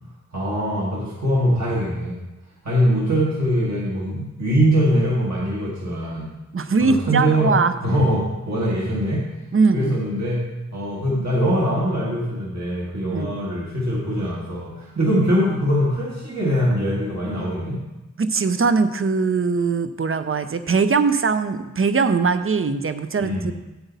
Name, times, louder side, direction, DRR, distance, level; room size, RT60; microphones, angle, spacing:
voice 1, 0.3-2.2 2.6-6.3 6.8-7.6 7.8-9.2 9.7-10.4 10.7-17.8 23.2-23.5, equal, 60° right, -5 dB, 1.9 m, -22 dB
voice 2, 6.5-7.7 9.5-10.0 13.1-13.4 18.2-23.5, right 4 dB, 45° right, 11 dB, 0.6 m, -21 dB
8.2 x 8.0 x 4.0 m, 1.1 s
wide cardioid pair, 70°, 31 cm